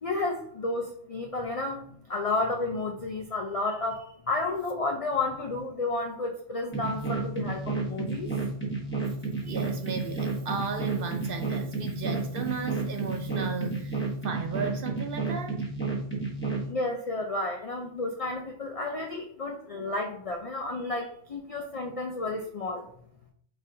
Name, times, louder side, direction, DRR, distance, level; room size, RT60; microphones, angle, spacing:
voice 1, 0.0-8.3 9.5-9.6 16.7-22.9, left 2 dB, 65° left, 0.3 m, -31 dB
sound 1, 6.7-16.7, right 3 dB, 10° left, 1.0 m, -31 dB
voice 2, 9.4-15.7, right 5 dB, 60° right, 0.6 m, -35 dB
5.0 x 3.7 x 2.7 m
omnidirectional pair, 1.2 m